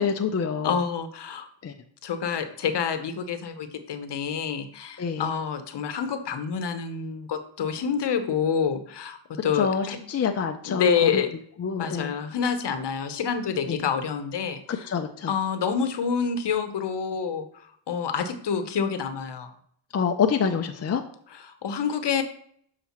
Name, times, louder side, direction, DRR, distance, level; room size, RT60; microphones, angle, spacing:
voice 1, 0.0-0.7 1.6-1.7 5.0-5.3 9.5-11.2 11.6-12.1 13.7-13.9 14.7-15.3 19.9-21.0, left 6 dB, 30° left, 4 dB, 0.5 m, -26 dB
voice 2, 0.6-1.5 2.0-10.0 10.6-11.3 11.8-15.0 15.3-17.5 17.9-19.5 21.3-22.2, left 6 dB, 55° left, 8 dB, 0.9 m, -27 dB
7.2 x 4.9 x 3.0 m, 0.62 s
cardioid pair, 80°, 48 cm